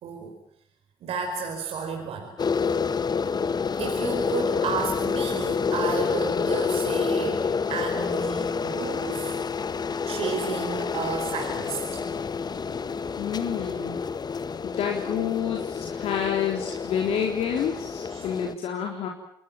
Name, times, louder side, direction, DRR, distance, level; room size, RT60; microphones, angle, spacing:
voice 1, 0.0-0.4 1.0-2.3 3.8-9.4 10.0-12.0 12.8-12.9 18.1-18.3, right 5 dB, 70° right, 3 dB, 5.2 m, -32 dB
sound 1, 2.4-18.5, left 5 dB, 40° left, 1.4 m, -28 dB
voice 2, 13.2-14.0 14.6-19.1, left 8 dB, 70° left, 1 dB, 3.8 m, -28 dB
28.0 x 21.0 x 9.1 m, 0.71 s
hypercardioid pair, 50°, 11 cm